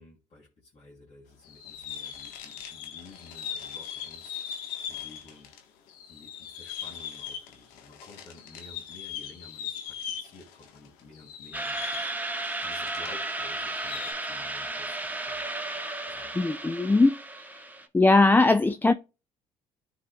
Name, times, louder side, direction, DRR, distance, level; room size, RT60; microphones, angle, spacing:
voice 1, 0.0-5.5 6.1-15.5 16.1-16.4, left 2 dB, 45° left, 3.0 m, -52 dB
sound 1, 1.4-5.6 5.9-13.2 13.5-14.1, left 8 dB, 80° left, 1.4 m, -40 dB
sound 2, 11.5-17.8, right 2 dB, 10° right, 1.5 m, -34 dB
voice 2, 16.4-17.1 17.9-18.9, left 3 dB, 15° left, 0.5 m, -20 dB
13.0 x 4.9 x 2.3 m
supercardioid pair, 65°, 15 cm